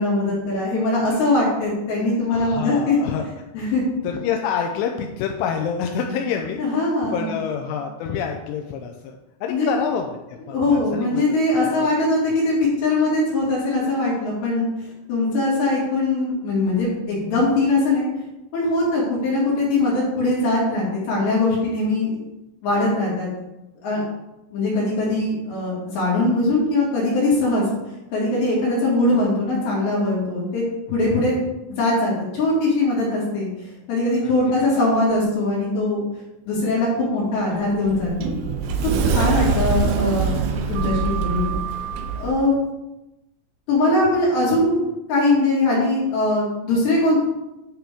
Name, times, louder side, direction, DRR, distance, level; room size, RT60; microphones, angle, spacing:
voice 1, 0.0-3.0 3.5-3.8 6.6-7.4 9.5-9.7 10.5-18.1 18.5-22.2 22.6-23.3 23.8-24.0 24.5-27.6 28.1-31.4 31.7-36.0 36.5-38.3 38.8-40.4 40.7-41.6 42.2-42.5 43.7-47.2, left 2 dB, 60° left, -6 dB, 3.8 m, -21 dB
voice 2, 2.3-3.2 3.6-3.7 4.0-6.6 7.1-11.2 11.6-11.9 34.2-34.3 39.3-39.6, left 7 dB, 85° left, 3 dB, 2.8 m, -27 dB
Sliding door, 37.5-42.3, right 6 dB, 85° right, 3.2 m, -23 dB
9.9 x 5.8 x 3.6 m, 0.96 s
omnidirectional pair, 6.0 m